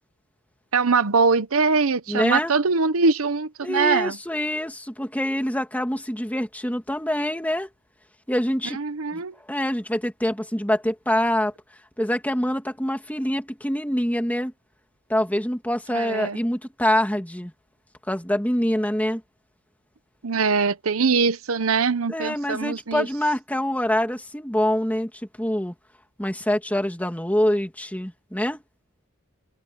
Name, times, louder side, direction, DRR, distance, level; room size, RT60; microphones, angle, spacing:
voice 1, 0.7-4.2 8.7-9.3 15.9-16.4 20.2-23.1, right 4 dB, 85° right, 0.9 m, -22 dB
voice 2, 2.1-2.5 3.6-7.7 8.3-8.8 9.1-11.5 12.0-14.5 15.1-17.5 18.1-19.2 22.1-25.1 25.4-25.7 26.2-28.6, equal, 5° left, 2.5 m, -25 dB
head